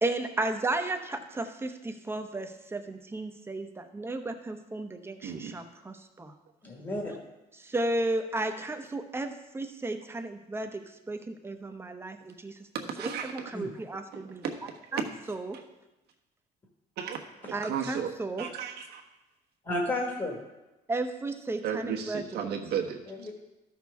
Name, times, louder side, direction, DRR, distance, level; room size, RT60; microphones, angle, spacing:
voice 1, 0.0-6.3 7.6-14.4 14.9-15.6 17.5-18.5 20.9-22.5, right 2 dB, 15° right, 6 dB, 0.8 m, -34 dB
voice 2, 5.2-5.6 12.7-13.5 14.1-14.5 15.5-15.6 17.0-18.1 18.4-19.0 21.6-23.0, right 8 dB, 75° right, 1 dB, 1.2 m, -34 dB
voice 3, 6.6-7.2 13.5-13.7 19.6-20.4 23.1-23.3, left 1 dB, 25° left, -1 dB, 1.6 m, -32 dB
13.0 x 6.1 x 3.5 m, 1.0 s
cardioid pair, 110°, 17 cm